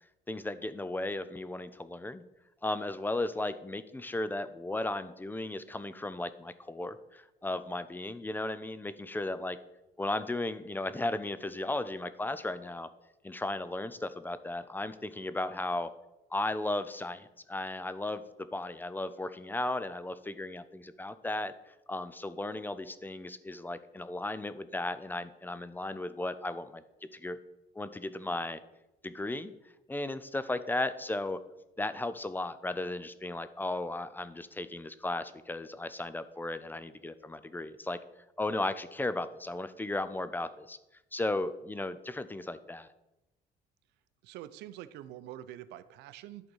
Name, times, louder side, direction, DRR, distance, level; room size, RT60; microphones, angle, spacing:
voice 1, 0.3-2.2 2.6-9.6 10.0-12.9 13.2-15.9 16.3-21.5 21.9-26.8 27.1-27.4 27.8-28.6 29.0-29.5 29.9-31.4 31.8-38.0 38.4-40.8 41.1-42.9, left 2 dB, 10° left, 13 dB, 0.5 m, -35 dB
voice 2, 44.2-46.5, right 12 dB, 85° right, 14 dB, 0.6 m, -46 dB
11.0 x 3.9 x 6.3 m, 0.95 s
cardioid pair, 110°, 17 cm